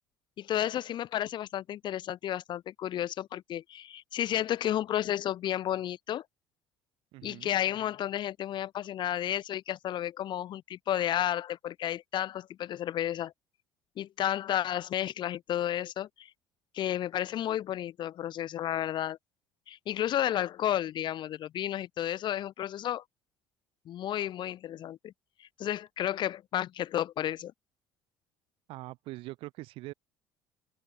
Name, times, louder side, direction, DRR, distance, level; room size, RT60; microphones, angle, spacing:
voice 1, 0.4-6.2 7.2-13.3 14.0-16.3 16.7-19.2 19.7-23.0 23.9-25.1 25.4-27.5, left 11 dB, 50° left, 1.2 m, -32 dB
voice 2, 7.1-7.5 28.7-29.9, right 20 dB, 60° right, 2.4 m, -43 dB
open air
hypercardioid pair, 60°, 10 cm